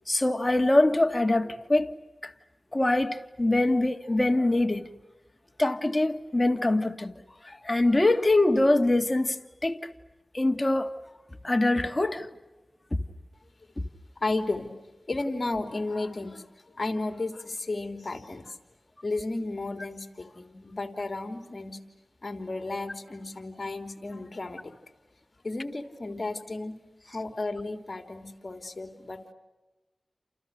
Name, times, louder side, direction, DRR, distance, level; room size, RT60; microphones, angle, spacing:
voice 1, 0.1-2.0 2.2-2.3 2.7-4.9 5.6-7.1 7.4-9.8 10.3-10.9 11.4-12.3 12.9-13.0 13.8-13.9, left 2 dB, 30° left, 1.9 m, -24 dB
voice 2, 14.2-14.8 15.1-16.5 16.7-18.6 19.0-21.8 22.2-24.7 25.4-26.7 27.1-29.3, left 2 dB, 50° left, 3.4 m, -33 dB
29.5 x 28.5 x 6.5 m
cardioid pair, 40°, 0 cm